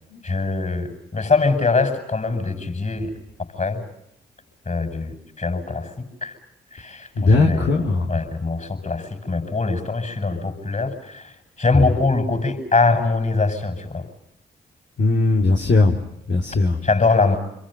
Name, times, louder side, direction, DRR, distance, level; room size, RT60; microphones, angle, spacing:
voice 1, 0.2-3.1 3.6-3.8 4.7-5.9 6.2-6.3 6.7-7.7 8.1-11.2 11.6-14.0 16.8-17.4, left 3 dB, 35° left, 8 dB, 7.8 m, -22 dB
voice 2, 7.2-8.1 15.0-15.9 16.3-16.8, left 3 dB, 60° left, 0 dB, 2.9 m, -18 dB
28.0 x 23.0 x 9.3 m, 0.80 s
hypercardioid pair, 40°, 21 cm